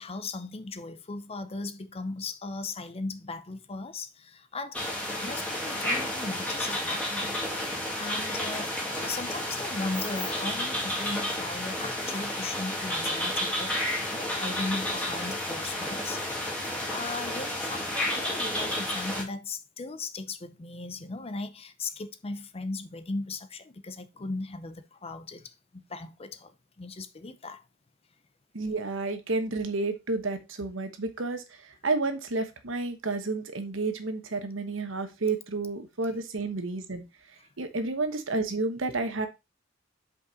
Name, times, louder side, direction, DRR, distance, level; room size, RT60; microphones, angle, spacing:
voice 1, 0.0-4.8 5.2-7.4 7.9-16.2 16.9-27.6, left 3 dB, 30° left, 0.6 m, -37 dB
sound 1, 4.7-19.2, left 1 dB, 5° left, 2.1 m, -31 dB
voice 2, 28.5-37.0 37.6-39.3, right 3 dB, 80° right, 1.1 m, -31 dB
5.4 x 5.3 x 4.0 m
head